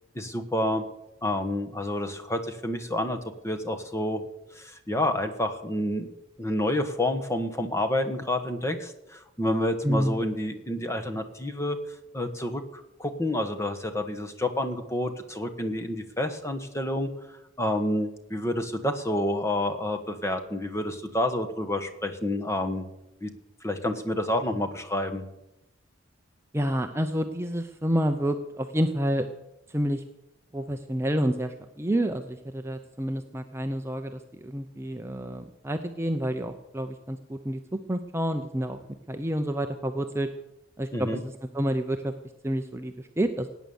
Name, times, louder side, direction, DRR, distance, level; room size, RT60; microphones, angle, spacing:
voice 1, 0.1-0.8 1.2-3.2 3.4-4.2 4.5-6.1 6.4-11.8 12.1-17.1 17.6-22.9 23.2-23.3 23.6-25.2 40.9-41.2, left 1 dB, 15° left, 6 dB, 1.3 m, -29 dB
voice 2, 9.8-10.2 26.5-29.3 29.7-30.0 30.5-37.6 37.9-38.8 39.1-40.3 40.8-42.1 42.4-43.5, equal, 15° right, 6 dB, 0.7 m, -29 dB
17.5 x 9.2 x 7.1 m, 0.89 s
head